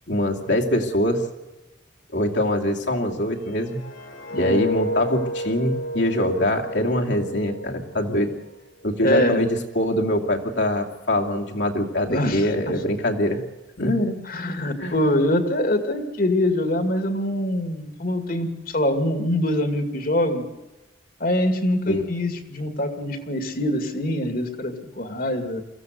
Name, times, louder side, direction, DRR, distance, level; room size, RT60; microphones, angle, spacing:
voice 1, 0.1-1.2 2.1-3.8 4.4-8.3 8.8-13.4 13.8-14.2 14.8-14.9 21.9-22.0, left 1 dB, 65° left, 1 dB, 2.6 m, -23 dB
sound 1, 3.4-8.4 8.8-9.1, left 1 dB, 85° left, 3.3 m, -31 dB
voice 2, 4.3-4.6 9.0-9.4 12.1-12.5 14.3-20.5 21.2-25.6, left 1 dB, 50° left, 7 dB, 2.2 m, -24 dB
23.0 x 15.5 x 8.1 m, 1.1 s
head